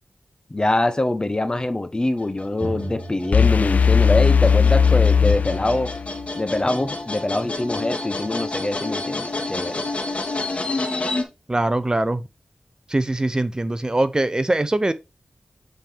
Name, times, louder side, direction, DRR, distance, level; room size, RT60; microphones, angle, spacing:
voice 1, 0.5-5.9 6.3-9.8, left 2 dB, 30° left, 1.1 m, -24 dB
sound 1, 2.2-11.2, left 2 dB, 50° left, 1.6 m, -30 dB
Drum, 2.6-6.1, right 1 dB, 55° right, 3.2 m, -37 dB
sound 2, 3.3-6.2, left 6 dB, 75° left, 0.4 m, -17 dB
voice 2, 11.5-12.2 12.9-14.9, right 2 dB, 30° right, 0.6 m, -22 dB
7.8 x 4.4 x 3.4 m
cardioid pair, 45°, 3 cm